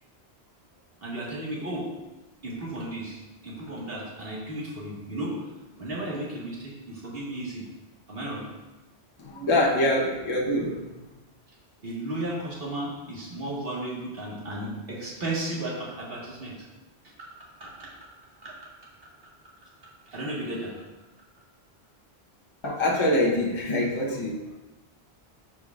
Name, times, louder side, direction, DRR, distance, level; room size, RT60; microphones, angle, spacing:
voice 1, 1.0-1.9 2.4-5.4 5.8-7.7 8.1-8.5 11.8-16.6 17.6-17.9 18.4-18.5 20.1-20.7, right 1 dB, 60° right, -5 dB, 2.0 m, -34 dB
voice 2, 9.2-10.9 22.6-24.6, left 1 dB, 30° left, -3 dB, 0.9 m, -25 dB
11.5 x 4.8 x 2.4 m, 1.1 s
omnidirectional pair, 1.1 m